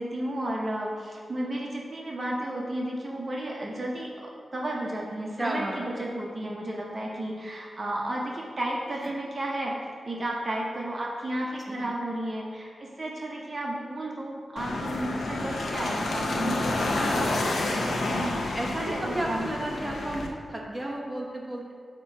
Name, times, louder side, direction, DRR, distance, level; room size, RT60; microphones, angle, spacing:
voice 1, 0.0-9.8 10.0-19.5, right 1 dB, 40° right, -2 dB, 0.9 m, -33 dB
voice 2, 5.4-6.1 11.7-12.0 18.5-21.7, right 1 dB, 15° right, -2 dB, 1.0 m, -33 dB
sound 1, 14.6-20.3, left 2 dB, 80° left, 0.8 m, -29 dB
8.5 x 3.0 x 5.4 m, 2.2 s
wide cardioid pair, 105°, 0 cm